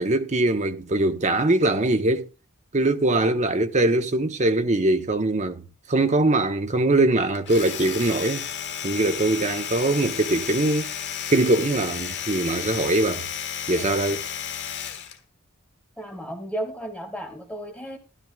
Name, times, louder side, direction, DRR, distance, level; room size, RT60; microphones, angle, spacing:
voice 1, 0.0-2.3 2.7-8.5 8.8-10.9 11.3-13.3 13.7-14.2, right 2 dB, 35° right, 0.9 m, -22 dB
Domestic sounds home sounds, 7.3-15.2, left 8 dB, 55° left, 1.3 m, -32 dB
voice 2, 16.0-18.0, right 1 dB, 5° left, 1.9 m, -34 dB
12.5 x 11.5 x 2.3 m
head